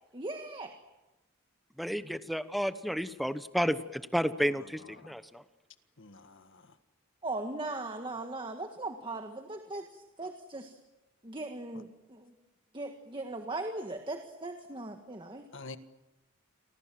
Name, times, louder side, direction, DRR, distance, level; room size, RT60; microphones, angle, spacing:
voice 1, 0.1-0.8 2.0-2.1 7.2-10.8 11.2-12.3 12.7-15.4, right 2 dB, 25° right, 5 dB, 1.7 m, -39 dB
voice 2, 1.8-5.4, equal, ahead, 11 dB, 1.0 m, -31 dB
voice 3, 6.0-6.8 11.7-11.8 15.5-15.8, left 3 dB, 60° left, 10 dB, 1.7 m, -48 dB
29.5 x 24.0 x 7.7 m, 1.1 s
head